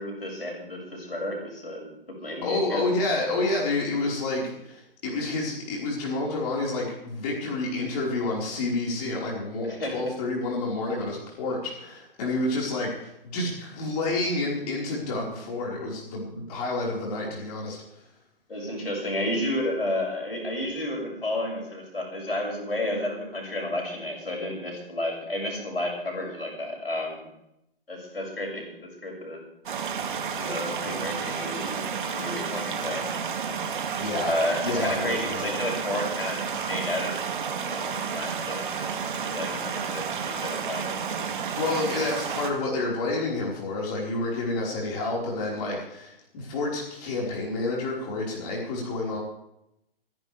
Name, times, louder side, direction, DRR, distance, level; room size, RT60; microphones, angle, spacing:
voice 1, 0.0-2.8 9.6-10.1 18.5-27.3 27.9-29.4 30.3-31.8 32.1-33.1 34.2-37.2 37.5-39.0 39.2-41.0, left 1 dB, 85° left, 0 dB, 6.5 m, -32 dB
voice 2, 2.4-17.8 30.8-31.0 34.0-34.3 34.6-35.5 41.6-49.2, left 2 dB, 40° left, -3 dB, 4.9 m, -29 dB
sound 1, 29.7-42.5, right 6 dB, 60° right, 2.4 m, -31 dB
27.5 x 11.0 x 3.5 m, 0.81 s
figure-of-eight pair, 120°, 29 cm